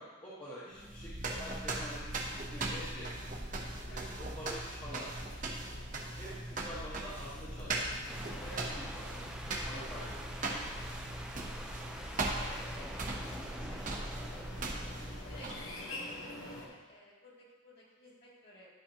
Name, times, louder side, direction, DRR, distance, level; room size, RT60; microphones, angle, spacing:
voice 1, 0.0-2.2 2.5-3.1 3.9-5.1 6.2-7.8 8.4-9.1 9.6-10.3 12.3-12.5, equal, 25° left, -11 dB, 1.4 m, -46 dB
sound 1, 0.7-15.9, right 2 dB, 40° right, 0.8 m, -39 dB
sound 2, 2.1-16.7, left 2 dB, 85° left, 1.1 m, -51 dB
sound 3, 8.1-16.6, equal, 5° right, 0.4 m, -47 dB
voice 2, 12.2-14.9 15.3-16.0 16.3-18.7, left 1 dB, 45° left, -6 dB, 2.5 m, -55 dB
11.5 x 5.0 x 2.9 m, 1.3 s
head